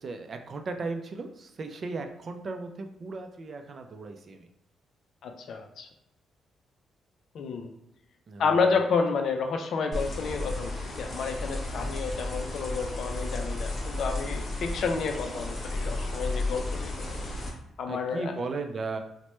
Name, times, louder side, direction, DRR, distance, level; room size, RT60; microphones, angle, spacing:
voice 1, 0.0-4.5 8.3-8.6 11.8-11.9 17.9-19.0, right 3 dB, 50° right, 6 dB, 0.4 m, -36 dB
voice 2, 5.2-5.9 7.3-7.7 8.4-17.2 17.8-18.3, left 5 dB, 65° left, 4 dB, 0.4 m, -30 dB
sound 1, 9.9-17.5, left 2 dB, 40° left, 0.8 m, -33 dB
3.0 x 2.1 x 3.0 m, 0.86 s
cardioid pair, 80°, 0 cm